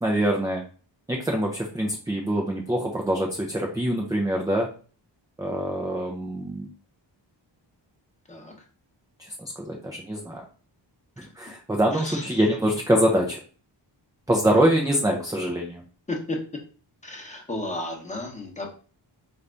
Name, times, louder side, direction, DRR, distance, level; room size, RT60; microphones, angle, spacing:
voice 1, 0.0-0.6 1.1-4.7 5.4-6.7 9.2-10.4 11.2-13.4 14.3-15.8, right 1 dB, 10° right, 0 dB, 0.5 m, -24 dB
voice 2, 11.9-12.4 16.1-16.4 17.0-18.7, left 1 dB, 15° left, 0 dB, 0.9 m, -33 dB
4.0 x 2.5 x 3.4 m, 0.39 s
wide cardioid pair, 115°, 44 cm